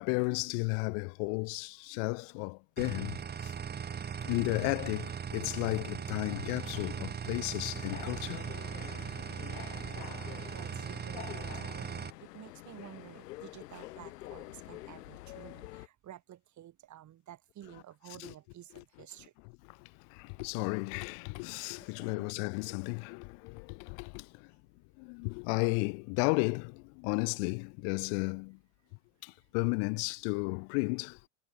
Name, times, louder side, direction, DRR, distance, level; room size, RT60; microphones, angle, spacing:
voice 1, 0.0-3.5 4.2-8.4 18.2-18.3 18.8-18.9 20.1-24.3 25.0-28.6 29.2-31.3, left 40 dB or more, 45° left, 0.6 m, -33 dB
sound 1, 2.8-12.1, right 7 dB, 20° right, 1.9 m, -39 dB
sound 2, 7.7-15.9, left 17 dB, 70° left, 5.4 m, -47 dB
voice 2, 10.5-19.3 22.0-22.3 27.1-27.2, right 12 dB, 35° right, 4.6 m, -52 dB
hypercardioid pair, 110°, 48 cm